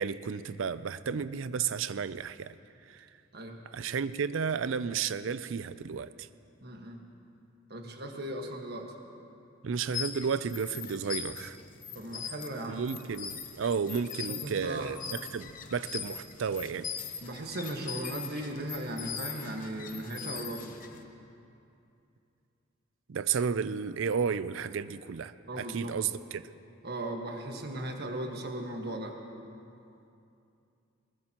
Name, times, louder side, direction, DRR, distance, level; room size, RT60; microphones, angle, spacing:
voice 1, 0.0-2.6 2.9-3.1 3.7-6.3 9.6-11.6 12.7-16.9 23.1-26.4, right 6 dB, 70° right, 15 dB, 0.4 m, -32 dB
voice 2, 6.6-7.0 7.7-8.9 11.9-12.8 14.3-14.9 17.2-20.7 25.5-25.9 26.8-29.2, right 1 dB, 55° right, 2 dB, 1.5 m, -37 dB
sound 1, 9.8-21.0, left 7 dB, 45° left, 1.0 m, -41 dB
21.5 x 19.5 x 3.0 m, 2.6 s
head